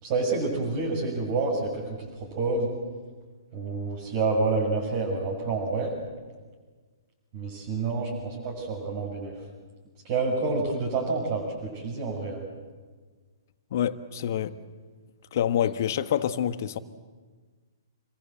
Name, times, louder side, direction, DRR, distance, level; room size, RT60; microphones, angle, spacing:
voice 1, 0.0-2.7 3.5-5.9 7.3-9.3 10.0-12.4, right 3 dB, 40° right, -4 dB, 6.7 m, -28 dB
voice 2, 13.7-14.5 15.3-16.8, left 10 dB, 50° left, 12 dB, 1.3 m, -27 dB
28.0 x 22.5 x 7.9 m, 1.4 s
figure-of-eight pair, 120°, 2 cm